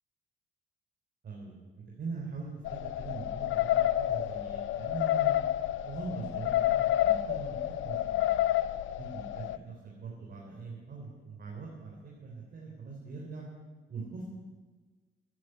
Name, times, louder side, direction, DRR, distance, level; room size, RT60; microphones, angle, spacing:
voice 1, 1.2-5.4 5.8-8.4 9.0-13.5 13.9-14.3, right 4 dB, 55° right, -2 dB, 3.8 m, -42 dB
sound 1, 2.7-9.6, left 13 dB, 75° left, 0.6 m, -29 dB
14.5 x 11.0 x 7.9 m, 1.3 s
cardioid pair, 90°, 20 cm